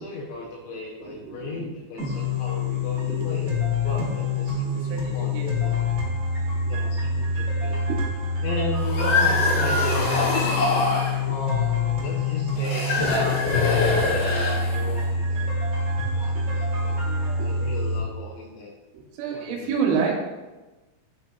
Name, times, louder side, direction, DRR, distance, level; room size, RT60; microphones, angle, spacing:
voice 1, 0.0-3.5 3.8-5.8 6.6-7.9 8.4-10.6 11.2-15.5 16.1-17.0 17.4-18.7 19.3-19.8, left 3 dB, 80° left, -2 dB, 2.7 m, -35 dB
voice 2, 1.0-1.7 2.1-2.3 2.7-3.4 4.7-5.5 6.5-6.8 7.9-8.0 11.2-11.3 16.1-16.4 17.0-17.5 18.9-20.2, right 6 dB, 80° right, -1 dB, 3.3 m, -30 dB
sound 1, 2.0-18.0, left 3 dB, 60° right, 1.6 m, -26 dB
sound 2, 8.7-11.2 12.6-15.0, left 2 dB, 65° left, 2.7 m, -24 dB
11.5 x 3.9 x 2.3 m, 1.1 s
omnidirectional pair, 5.9 m